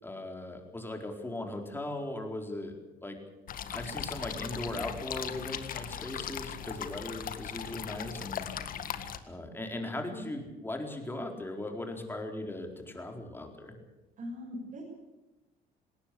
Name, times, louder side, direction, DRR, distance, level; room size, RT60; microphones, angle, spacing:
voice 1, 0.0-2.7 3.0-3.2 3.7-8.5 9.3-13.7, left 1 dB, 15° left, 3 dB, 4.2 m, -38 dB
sound 1, 3.5-9.2, left 9 dB, 55° left, 1.8 m, -38 dB
voice 2, 14.2-14.8, left 1 dB, 50° right, -3 dB, 6.5 m, -40 dB
20.0 x 18.0 x 8.5 m, 1.1 s
cardioid pair, 110°, 17 cm